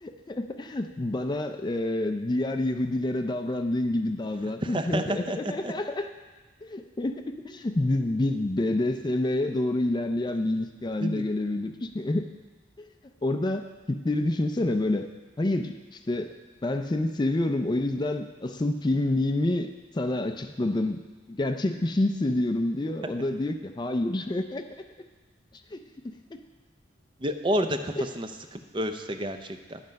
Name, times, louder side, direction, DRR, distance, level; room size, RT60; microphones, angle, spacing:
voice 1, 0.0-6.1 6.6-12.3 13.2-15.1 15.4-16.3 16.6-21.0 21.3-24.8 25.7-26.4 28.0-28.1, left 1 dB, 25° left, 7 dB, 0.4 m, -28 dB
voice 2, 4.6-5.4 5.6-5.7 11.0-11.2 23.0-23.1 27.2-29.8, equal, 25° right, 7 dB, 0.5 m, -30 dB
10.5 x 7.7 x 5.2 m, 1.3 s
head